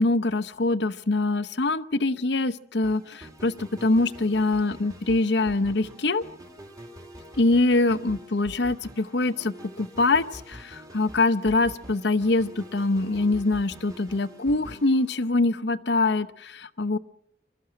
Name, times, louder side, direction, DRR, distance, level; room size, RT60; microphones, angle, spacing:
voice 1, 0.0-6.2 7.4-17.0, left 2 dB, 75° left, 12 dB, 0.9 m, -24 dB
sound 1, 2.8-15.8, equal, 20° right, 2.4 m, -46 dB
24.5 x 13.5 x 8.7 m, 0.77 s
head